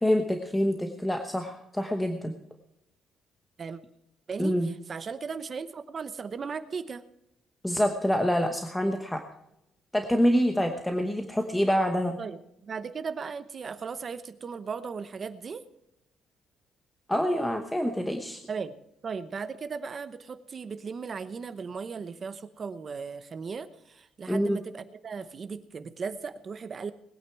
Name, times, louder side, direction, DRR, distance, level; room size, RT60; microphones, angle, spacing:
voice 1, 0.0-2.3 4.4-4.7 7.6-9.2 9.9-12.2 17.1-18.4 24.3-24.6, equal, 5° left, 5 dB, 1.0 m, -26 dB
voice 2, 4.3-7.0 12.2-15.6 18.5-18.7 19.0-26.9, right 5 dB, 30° right, 11 dB, 0.9 m, -37 dB
20.5 x 9.4 x 4.7 m, 0.83 s
cardioid pair, 170°, 0 cm